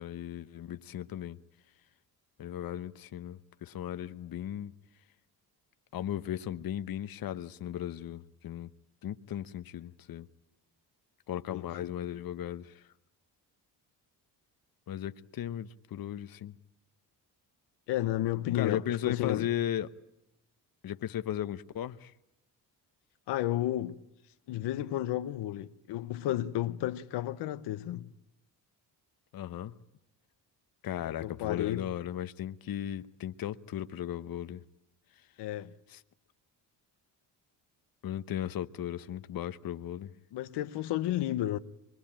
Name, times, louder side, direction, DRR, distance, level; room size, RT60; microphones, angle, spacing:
voice 1, 0.0-1.4 2.4-4.7 5.9-8.7 9.0-10.3 11.3-12.9 14.9-16.5 18.5-19.9 20.8-22.1 29.3-29.7 30.8-34.6 35.9-36.0 38.0-40.1, left 11 dB, 60° left, 1.1 m, -36 dB
voice 2, 17.9-19.5 23.3-24.0 24.5-28.1 31.2-31.9 35.4-35.7 40.3-41.6, left 13 dB, 85° left, 1.1 m, -32 dB
24.5 x 22.5 x 8.9 m
cardioid pair, 95°, 40 cm